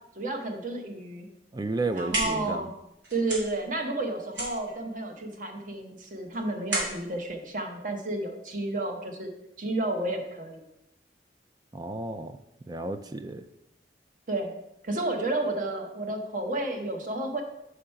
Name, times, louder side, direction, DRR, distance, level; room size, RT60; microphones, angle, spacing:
voice 1, 0.2-1.3 1.9-2.7 3.1-9.3 9.6-10.6 14.3-14.6 14.8-17.4, right 2 dB, 45° right, 4 dB, 1.0 m, -31 dB
voice 2, 1.5-2.7 11.7-12.4 12.7-13.4, right 2 dB, 20° right, 9 dB, 0.3 m, -32 dB
sound 1, 1.7-8.5, right 2 dB, 85° right, 2.8 m, -36 dB
5.4 x 5.0 x 5.7 m, 0.85 s
head